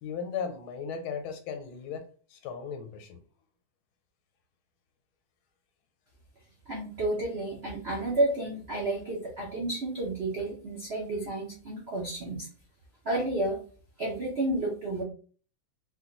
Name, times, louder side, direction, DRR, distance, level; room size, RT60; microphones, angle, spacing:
voice 1, 0.0-3.2, left 6 dB, 90° left, 6 dB, 1.5 m, -37 dB
voice 2, 6.7-12.5 13.0-13.6 14.0-15.0, right 2 dB, 90° right, -3 dB, 0.5 m, -31 dB
3.9 x 2.2 x 2.9 m, 0.40 s
omnidirectional pair, 2.2 m